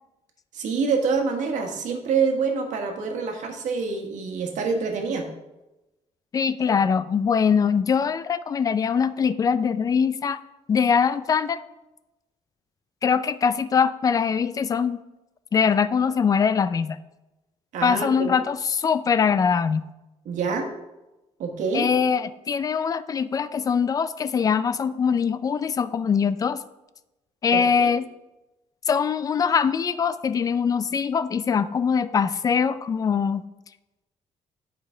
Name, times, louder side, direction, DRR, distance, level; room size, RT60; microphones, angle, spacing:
voice 1, 0.5-5.3 17.7-18.3 20.2-20.7 21.4-21.9 27.5-27.9, right 5 dB, 85° right, 3 dB, 1.4 m, -26 dB
voice 2, 6.3-10.4 10.7-11.6 13.0-15.0 15.5-17.0 17.8-19.9 21.7-26.6 27.4-28.1 28.9-33.4, left 6 dB, 30° left, 14 dB, 0.3 m, -22 dB
9.7 x 5.1 x 4.4 m, 0.99 s
cardioid pair, 160°, 12 cm